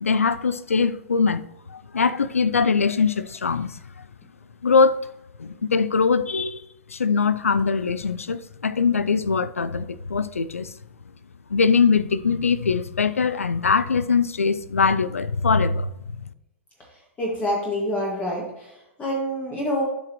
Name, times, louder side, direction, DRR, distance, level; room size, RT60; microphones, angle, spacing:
voice 1, 0.0-1.4 1.7-3.8 4.6-5.1 5.4-6.6 6.9-10.7 11.5-15.9, left 5 dB, 90° left, 0.4 m, -22 dB
voice 2, 17.2-19.8, equal, 20° left, 2.0 m, -27 dB
12.0 x 5.1 x 3.1 m
hypercardioid pair, 110°, 7 cm